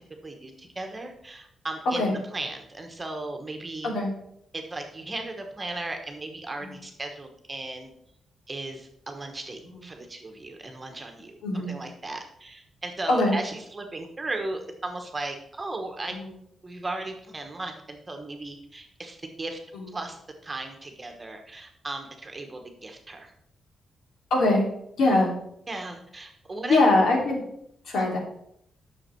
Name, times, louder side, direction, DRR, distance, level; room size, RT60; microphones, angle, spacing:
voice 1, 0.2-3.9 4.5-7.9 8.5-16.2 16.6-19.6 19.9-23.3 25.7-26.8 27.9-28.2, right 2 dB, 20° right, 4 dB, 1.2 m, -36 dB
voice 2, 11.4-11.8 13.1-13.4 16.1-16.3 19.7-19.9 24.3-24.7 25.0-25.3 26.7-27.4 27.8-28.2, left 2 dB, 85° left, -1 dB, 3.0 m, -22 dB
9.9 x 6.5 x 4.5 m, 0.72 s
wide cardioid pair, 170°, 0 cm